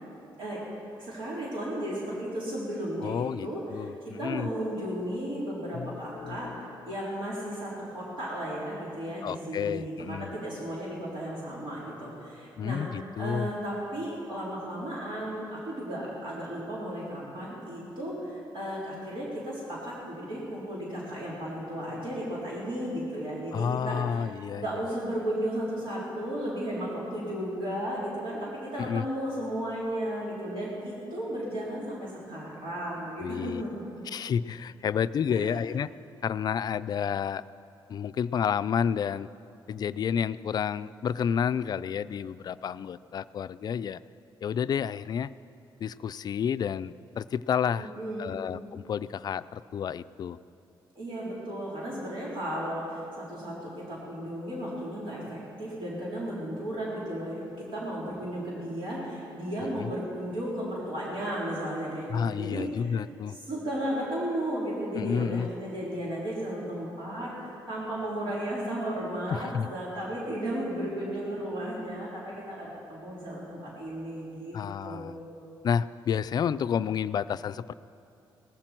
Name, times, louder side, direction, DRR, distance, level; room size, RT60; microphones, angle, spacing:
voice 1, 1.0-6.5 6.9-12.8 13.2-24.3 24.6-33.8 35.3-35.6 47.8-48.4 50.9-57.4 57.7-62.9 63.5-74.6 74.8-75.4, right 1 dB, 75° right, -7 dB, 3.9 m, -34 dB
voice 2, 3.0-4.5 5.7-6.7 9.2-10.3 12.6-13.5 23.5-24.7 28.8-29.1 33.2-33.6 34.1-35.9 36.2-37.4 37.9-39.3 39.7-44.0 44.4-45.3 45.8-47.9 48.2-50.4 59.8-59.9 62.1-63.4 64.9-65.5 69.3-69.7 74.5-75.2 75.6-77.7, left 7 dB, 50° left, 14 dB, 0.3 m, -30 dB
18.5 x 15.0 x 4.5 m, 2.8 s
cardioid pair, 130°, 9 cm